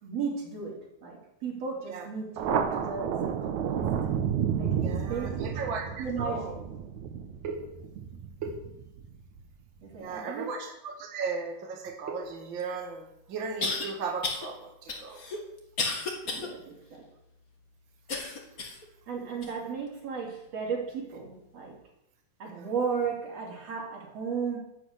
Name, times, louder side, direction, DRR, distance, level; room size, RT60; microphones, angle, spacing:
voice 1, 0.0-3.9 4.6-5.5 6.0-6.5 9.8-10.5 16.3-17.0 19.1-21.8 22.4-24.6, right 5 dB, 40° right, -1 dB, 4.2 m, -35 dB
Thunder, 2.4-9.4, right 8 dB, 75° right, 1.7 m, -31 dB
voice 2, 4.8-6.5 7.4-7.6 8.4-8.5 10.0-15.2 22.5-22.7, right 4 dB, 55° right, 2 dB, 1.3 m, -36 dB
sound 1, 12.6-12.7 13.6-13.9 14.2-14.5 14.9-16.5 16.9-17.0 18.1-18.8 19.4-19.5 20.3-20.4, left 3 dB, 55° left, 0.9 m, -32 dB
11.0 x 8.5 x 9.8 m, 0.85 s
omnidirectional pair, 4.9 m